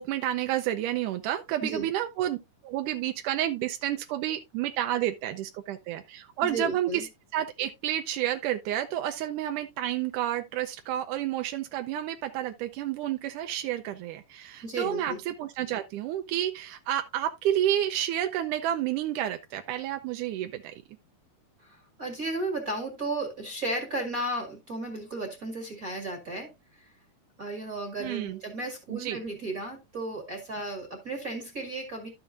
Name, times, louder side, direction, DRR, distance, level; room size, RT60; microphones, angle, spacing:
voice 1, 0.0-2.4 2.6-7.0 7.3-20.7 28.0-28.4 28.9-29.2, right 12 dB, 85° right, 1.8 m, -30 dB
voice 2, 6.4-7.1 14.6-15.2 21.6-26.9 27.4-32.1, right 2 dB, 35° right, 1.5 m, -34 dB
12.5 x 6.9 x 2.5 m
omnidirectional pair, 4.5 m